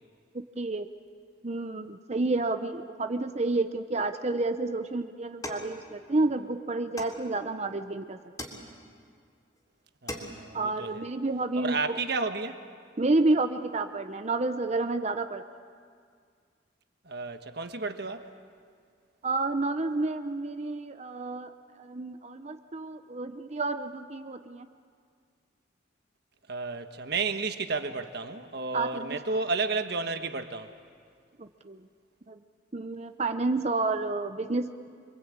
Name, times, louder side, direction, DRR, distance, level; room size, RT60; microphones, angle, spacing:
voice 1, 0.3-0.9 1.4-8.2 10.5-12.0 13.0-15.4 19.2-21.5 21.8-24.7 28.7-29.2 31.4-31.8 32.3-32.4 32.7-34.7, right 2 dB, 35° right, 8 dB, 0.7 m, -30 dB
sound 1, 5.4-6.4 7.0-7.7 8.4-9.1 9.6-9.7 9.9-10.6, left 1 dB, 20° left, 3.2 m, -41 dB
voice 2, 10.0-11.1 11.5-12.6 17.0-18.3 26.5-30.7, right 4 dB, 55° right, 8 dB, 1.4 m, -32 dB
27.0 x 23.5 x 8.7 m, 2.1 s
head